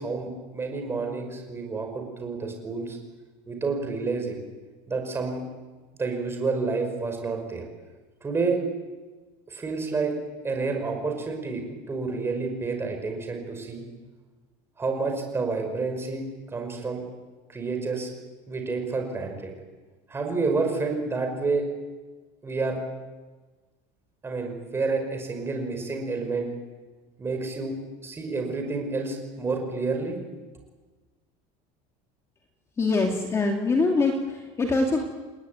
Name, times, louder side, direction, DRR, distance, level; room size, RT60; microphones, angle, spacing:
voice 1, 0.0-3.0 3.5-4.4 4.9-5.4 6.0-7.6 8.2-8.6 9.5-10.1 10.4-13.9 14.8-17.0 17.5-18.1 18.5-19.5 20.1-21.7 22.4-22.8 24.2-26.5 27.2-27.8 28.0-30.2, right 4 dB, 15° right, 3 dB, 5.4 m, -29 dB
voice 2, 32.8-35.0, left 3 dB, 15° left, 2 dB, 2.4 m, -24 dB
29.5 x 20.0 x 9.3 m, 1.3 s
cardioid pair, 175°, 16 cm